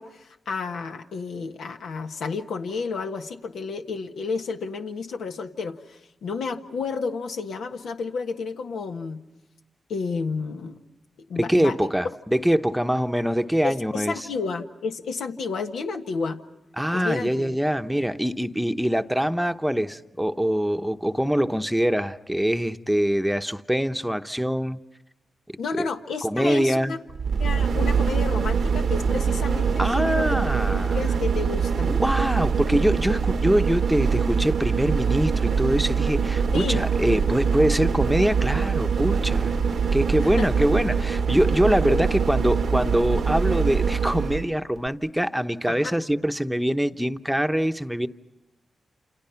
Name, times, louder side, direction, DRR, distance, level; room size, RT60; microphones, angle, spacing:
voice 1, 0.0-9.2 9.9-10.8 11.3-11.9 13.6-16.4 16.9-17.5 25.6-27.0 27.4-30.4 30.7-31.9 36.5-36.8 40.2-40.5 41.9-42.0 45.7-45.9, left 4 dB, 85° left, 4 dB, 1.5 m, -31 dB
voice 2, 11.4-14.3 16.8-24.8 25.8-25.9 26.2-27.0 29.8-31.0 31.9-39.6 39.9-48.1, equal, 5° right, 8 dB, 0.9 m, -24 dB
sound 1, 27.1-44.5 44.9-45.0, right 6 dB, 75° right, 0.9 m, -23 dB
29.0 x 28.5 x 5.8 m, 0.99 s
cardioid pair, 65°, 0 cm